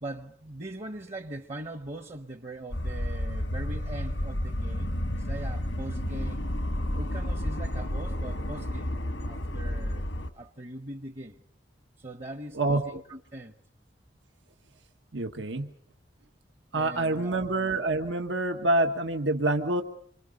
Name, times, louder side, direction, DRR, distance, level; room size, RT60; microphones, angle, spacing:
voice 1, 0.0-6.4 7.0-8.9 9.3-10.1 10.3-11.4 12.0-13.6 16.7-17.5, right 1 dB, 35° right, 0.9 m, -41 dB
sound 1, 2.7-10.3, left 1 dB, 90° left, 1.5 m, -31 dB
voice 2, 12.5-13.0 15.1-15.7 16.7-19.8, right 2 dB, 85° right, 1.5 m, -27 dB
27.0 x 26.0 x 5.2 m
head